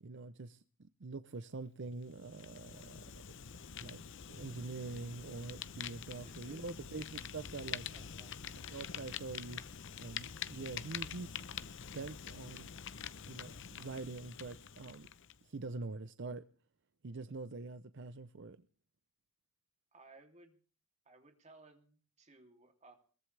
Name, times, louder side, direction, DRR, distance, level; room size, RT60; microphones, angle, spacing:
voice 1, 0.0-3.0 3.8-4.0 4.3-7.9 8.7-9.6 10.0-11.4 11.9-12.7 13.2-15.1 15.4-16.4 17.0-18.6, right 3 dB, 60° right, 0.7 m, -45 dB
Fire, 2.0-15.4, left 8 dB, 60° left, 0.8 m, -46 dB
voice 2, 6.1-6.6 7.9-8.4 19.9-20.6 21.0-22.9, right 2 dB, 35° right, 3.0 m, -60 dB
21.5 x 19.0 x 3.4 m
head